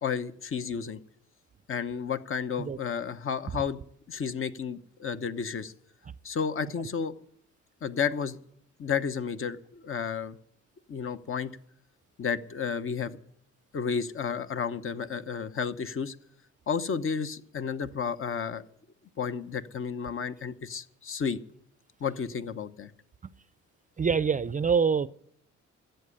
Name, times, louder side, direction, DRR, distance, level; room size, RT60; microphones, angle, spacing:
voice 1, 0.0-1.0 1.7-3.8 4.1-5.7 6.2-7.1 7.8-8.4 8.8-10.4 10.9-11.5 12.2-13.2 13.7-16.1 16.7-18.6 19.2-21.4 22.0-22.9, left 6 dB, 45° left, 1.0 m, -32 dB
voice 2, 24.0-25.1, right 6 dB, 25° right, 0.5 m, -25 dB
13.5 x 7.9 x 9.9 m
cardioid pair, 90°, 30 cm